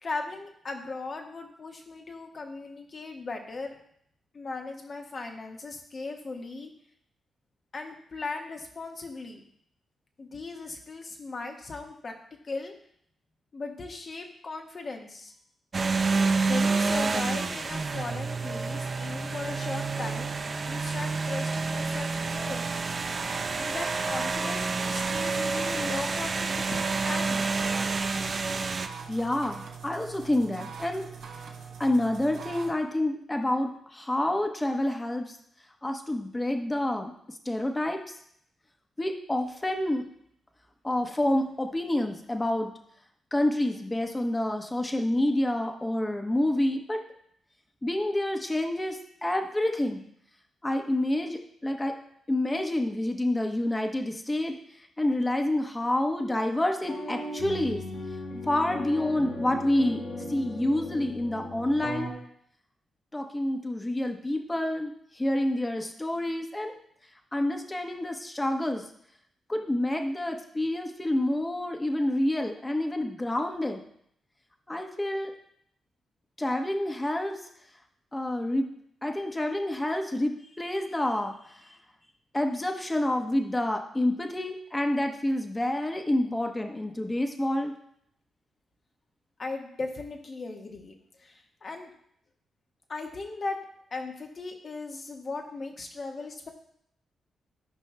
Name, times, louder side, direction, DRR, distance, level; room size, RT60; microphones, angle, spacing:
voice 1, 0.0-3.8 4.3-6.7 7.7-9.4 10.2-12.1 12.4-12.7 13.5-15.3 16.5-20.4 20.6-22.6 23.6-27.7 89.4-91.9 92.9-93.6 93.9-96.5, left 3 dB, 50° left, 3 dB, 1.3 m, -38 dB
sound 1, 15.7-28.9, right 4 dB, 45° right, 0.6 m, -29 dB
sound 2, 22.2-32.7, right 6 dB, 70° right, 0.9 m, -43 dB
voice 2, 29.1-31.1 31.8-35.4 35.8-37.1 37.4-38.0 39.0-40.1 40.8-42.7 43.3-47.0 47.8-50.0 50.6-51.9 52.3-54.6 55.0-57.8 58.5-60.0 60.3-62.1 63.1-66.7 67.3-68.8 69.5-73.8 74.7-75.3 76.4-77.4 78.1-78.7 79.0-81.5 82.3-87.7, left 1 dB, 20° left, 4 dB, 1.1 m, -28 dB
sound 3, 56.8-62.1, left 1 dB, 70° left, 3.2 m, -37 dB
13.5 x 5.4 x 2.2 m, 0.69 s
hypercardioid pair, 45°, 0 cm